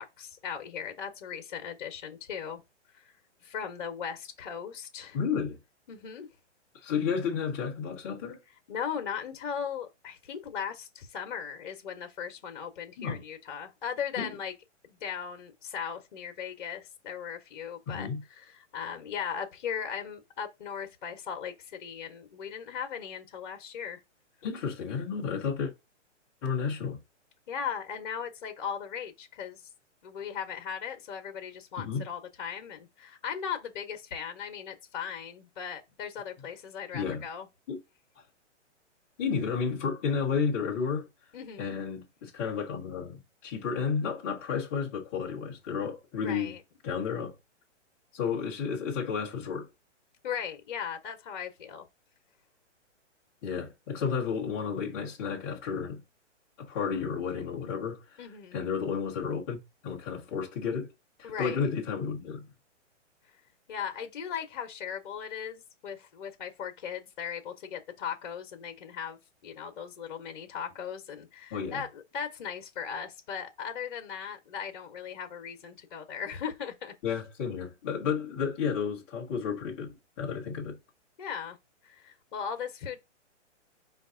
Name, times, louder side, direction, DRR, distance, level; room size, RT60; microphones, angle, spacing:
voice 1, 0.0-2.6 3.4-5.2 5.9-6.3 8.7-14.5 14.8-24.0 27.5-29.6 30.0-37.5 41.3-41.8 46.2-46.6 50.2-51.8 58.2-58.7 61.2-61.7 63.7-76.9 81.2-81.6 81.8-83.0, left 7 dB, 40° left, 0.9 m, -38 dB
voice 2, 5.1-5.6 6.8-8.4 13.0-13.2 14.2-14.3 17.9-18.2 24.4-25.7 26.4-27.0 31.8-32.1 36.9-37.2 37.7-37.8 39.2-41.1 41.6-46.6 46.8-47.3 48.1-49.7 53.4-56.0 56.6-58.0 58.5-60.9 61.2-62.4 71.5-71.8 77.0-80.8, left 6 dB, 10° left, 0.6 m, -32 dB
5.1 x 2.4 x 3.7 m
hypercardioid pair, 170°, 36 cm